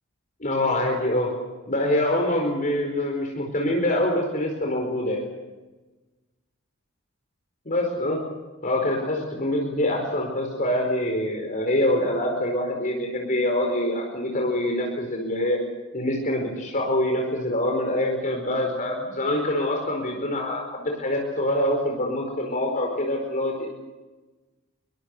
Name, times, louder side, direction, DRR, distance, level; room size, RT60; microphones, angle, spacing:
voice 1, 0.4-1.3 1.7-5.3 7.6-8.2 8.6-15.6 15.9-23.7, left 1 dB, 40° left, 1 dB, 4.7 m, -25 dB
26.5 x 23.5 x 6.8 m, 1.2 s
head